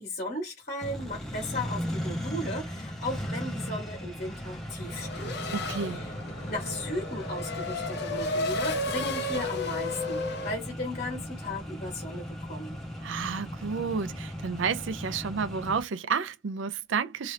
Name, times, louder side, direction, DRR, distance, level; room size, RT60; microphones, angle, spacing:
voice 1, 0.0-5.5 5.9-6.1 6.5-12.8, left 1 dB, 40° left, 1.4 m, -36 dB
Accelerating revving vroom, 0.8-15.8, equal, ahead, 0.7 m, -37 dB
Race car auto racing / Accelerating revving vroom, 4.9-10.5, left 2 dB, 55° left, 0.7 m, -33 dB
voice 2, 5.5-6.0 13.0-17.3, right 5 dB, 65° right, 0.5 m, -31 dB
2.8 x 2.4 x 3.3 m
head